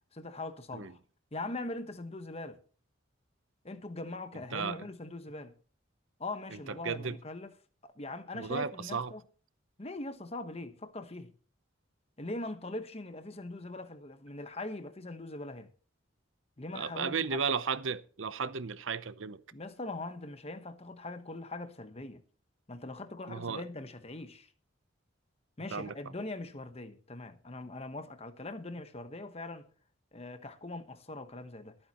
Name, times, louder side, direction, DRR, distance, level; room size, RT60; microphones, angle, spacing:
voice 1, 0.1-1.0 1.3-2.6 3.6-5.5 6.2-7.5 7.8-9.2 9.8-11.3 12.2-15.7 16.6-17.4 19.5-22.2 22.7-24.5 25.6-29.7 30.1-31.8, left 2 dB, 30° left, 1.1 m, -41 dB
voice 2, 6.5-7.2 8.3-9.1 16.7-19.4 23.3-23.6 25.7-25.9, right 5 dB, 80° right, 0.8 m, -34 dB
22.0 x 9.0 x 3.0 m
head